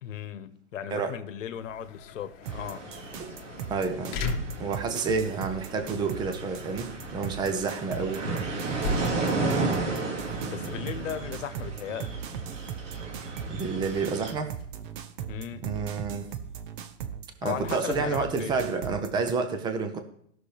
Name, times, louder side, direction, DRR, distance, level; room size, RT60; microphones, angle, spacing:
voice 1, 0.0-2.8 9.3-9.7 10.5-12.2 15.3-15.7 17.4-18.6, left 9 dB, 90° left, 1.1 m, -36 dB
sound 1, 1.4-16.8, left 3 dB, 40° left, 1.5 m, -41 dB
sound 2, 2.4-14.3, right 3 dB, 90° right, 2.4 m, -34 dB
sound 3, 2.5-19.3, right 8 dB, 45° right, 0.8 m, -39 dB
voice 2, 3.7-4.2 4.6-8.4 13.5-14.6 15.6-16.3 17.4-20.0, right 4 dB, 10° right, 0.6 m, -29 dB
16.5 x 6.3 x 3.4 m
hypercardioid pair, 150°, 37 cm